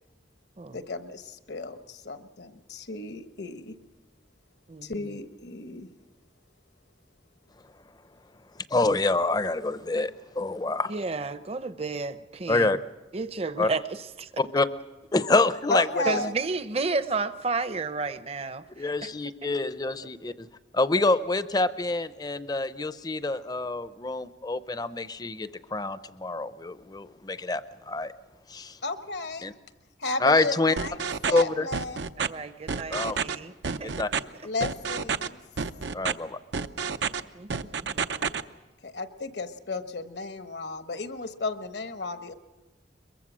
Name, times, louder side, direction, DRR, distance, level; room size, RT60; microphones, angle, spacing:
voice 1, 0.7-3.7 4.8-5.9 15.7-16.3 28.8-29.5 30.0-31.0 31.3-32.0 34.4-35.4 38.8-42.3, left 3 dB, 70° left, 9 dB, 1.2 m, -33 dB
voice 2, 4.7-5.2 10.9-12.8 13.1-14.3 16.0-19.1 19.4-19.6 32.2-33.9 37.3-38.3, right 3 dB, 35° right, 13 dB, 0.7 m, -32 dB
voice 3, 8.7-10.9 12.5-12.8 13.6-13.7 14.4-14.7 15.1-16.0 18.8-20.5 20.7-28.1 28.5-28.8 29.4-29.5 30.2-30.8 31.3-31.7 32.9-33.2 33.8-34.1 35.9-36.4, left 2 dB, 20° left, 14 dB, 0.6 m, -26 dB
sound 1, 30.8-31.4 31.7-32.3 32.7-33.3 33.6-34.2 34.6-35.3 35.6-36.1 36.5-37.2 37.5-38.4, right 6 dB, 80° right, 0.7 m, -29 dB
22.5 x 22.5 x 6.2 m, 1.2 s
head